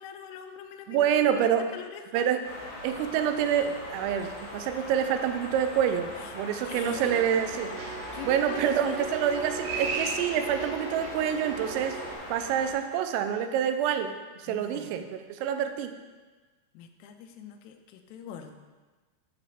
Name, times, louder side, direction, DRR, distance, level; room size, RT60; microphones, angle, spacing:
voice 1, 0.0-2.3 6.7-7.2 8.1-9.2 14.5-15.0 16.8-18.6, left 8 dB, 85° left, 6 dB, 3.4 m, -43 dB
voice 2, 0.9-1.7 2.1-2.5 2.8-7.7 8.2-12.0 12.3-14.1 14.4-16.0, right 9 dB, 90° right, 8 dB, 3.4 m, -27 dB
sound 1, 2.4-12.7, left 1 dB, 50° left, 2.3 m, -41 dB
sound 2, 6.8-12.1, right 4 dB, 65° right, 4.0 m, -36 dB
12.5 x 4.2 x 7.1 m, 1.3 s
omnidirectional pair, 5.8 m